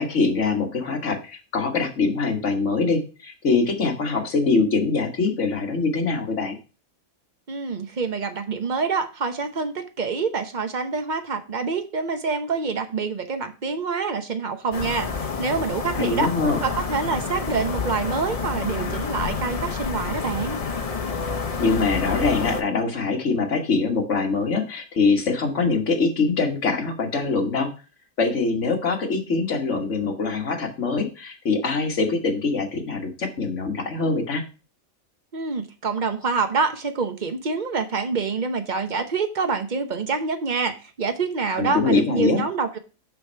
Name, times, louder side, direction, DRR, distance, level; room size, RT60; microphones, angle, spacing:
voice 1, 0.0-6.6 15.9-16.6 21.6-27.7 28.2-34.4 41.6-42.4, left 4 dB, 60° left, 2 dB, 1.8 m, -23 dB
voice 2, 7.5-16.3 16.6-20.6 35.3-42.8, right 4 dB, 40° right, 7 dB, 0.9 m, -26 dB
sound 1, 14.7-22.6, left 5 dB, 35° left, 0.6 m, -29 dB
6.8 x 5.4 x 4.5 m, 0.34 s
omnidirectional pair, 1.5 m